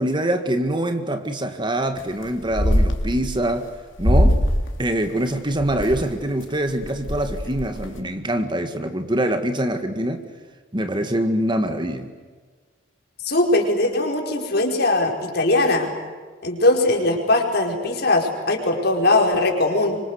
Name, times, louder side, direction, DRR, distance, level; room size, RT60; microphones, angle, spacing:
voice 1, 0.0-3.7 4.0-4.4 4.8-10.2 10.7-12.1, right 1 dB, 25° right, 7 dB, 1.8 m, -24 dB
sound 1, 2.0-2.2 2.5-3.6 4.0-4.6 5.0-6.0 6.5-6.6 6.8-8.0, equal, 80° left, 3.5 m, -20 dB
voice 2, 13.2-15.9 16.4-20.0, left 2 dB, 55° left, 2 dB, 5.0 m, -20 dB
27.0 x 25.0 x 8.2 m, 1.5 s
head